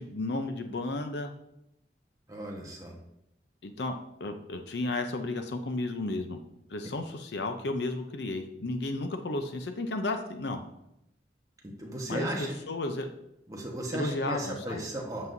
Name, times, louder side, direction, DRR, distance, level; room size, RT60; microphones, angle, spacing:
voice 1, 0.0-1.3 3.6-6.4 6.7-10.6 12.1-13.1 13.9-14.8, left 2 dB, 75° left, 6 dB, 0.6 m, -33 dB
voice 2, 2.3-2.9 11.6-12.6 13.5-15.3, right 1 dB, 20° right, -1 dB, 1.2 m, -36 dB
8.2 x 7.5 x 2.7 m, 0.81 s
head